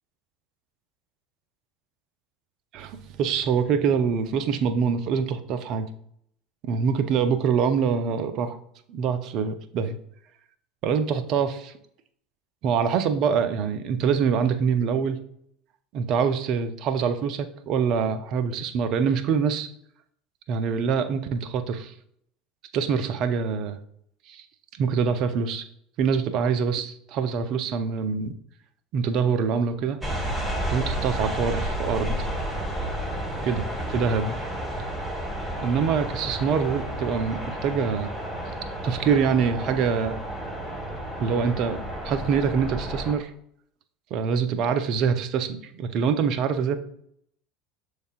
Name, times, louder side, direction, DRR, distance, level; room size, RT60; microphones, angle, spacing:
voice 1, 2.7-5.9 6.6-8.6 8.9-10.0 10.8-11.7 12.6-15.2 15.9-19.7 20.5-21.9 22.7-23.8 24.3-24.4 24.8-25.7 26.0-28.3 28.9-30.0 30.7-32.2 33.4-34.3 35.6-38.1 38.8-40.2 41.2-43.3 44.1-46.8, right 6 dB, 50° right, 10 dB, 0.4 m, -25 dB
sound 1, 30.0-43.1, right 1 dB, 10° right, 1.2 m, -31 dB
6.4 x 3.2 x 2.4 m, 0.68 s
figure-of-eight pair, 75°, 0 cm